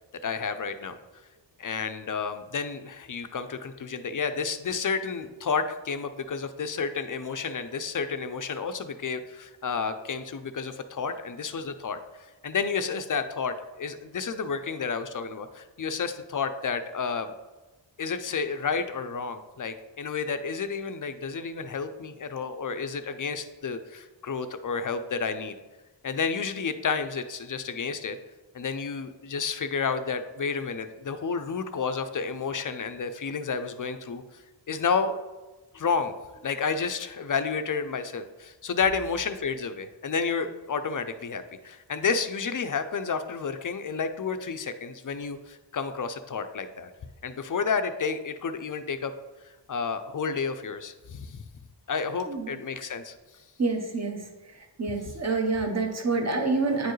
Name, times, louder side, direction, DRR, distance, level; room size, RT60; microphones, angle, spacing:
voice 1, 0.2-1.0 1.6-12.0 12.4-17.3 18.0-25.5 26.0-28.2 28.5-34.2 34.7-35.2 35.7-36.1 36.4-46.9 47.2-49.1 49.7-51.4 51.9-53.1, left 5 dB, 45° left, 9 dB, 0.5 m, -31 dB
voice 2, 53.6-54.3 54.8-56.9, right 3 dB, 35° right, 3 dB, 0.9 m, -27 dB
9.2 x 4.6 x 3.1 m, 1.2 s
wide cardioid pair, 105°, 46 cm